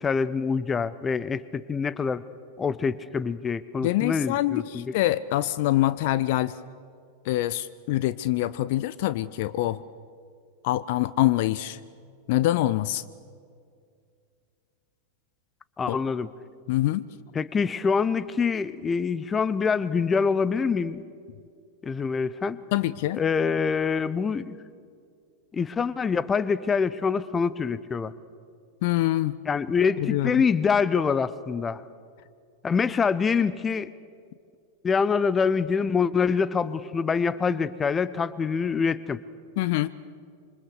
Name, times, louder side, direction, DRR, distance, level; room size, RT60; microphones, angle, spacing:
voice 1, 0.0-2.2 2.6-4.9 15.8-16.3 17.3-21.1 21.8-22.6 23.2-24.6 25.5-28.1 29.5-31.8 32.6-33.9 34.8-39.2, left 5 dB, 20° left, 18 dB, 0.8 m, -25 dB
voice 2, 3.8-6.5 7.3-9.8 10.6-11.8 12.3-13.0 15.9-16.0 16.7-17.1 22.7-23.2 28.8-29.3 30.0-30.4 39.6-39.9, left 15 dB, 50° left, 17 dB, 0.6 m, -25 dB
27.0 x 24.5 x 6.7 m, 2.2 s
figure-of-eight pair, 90°, 0 cm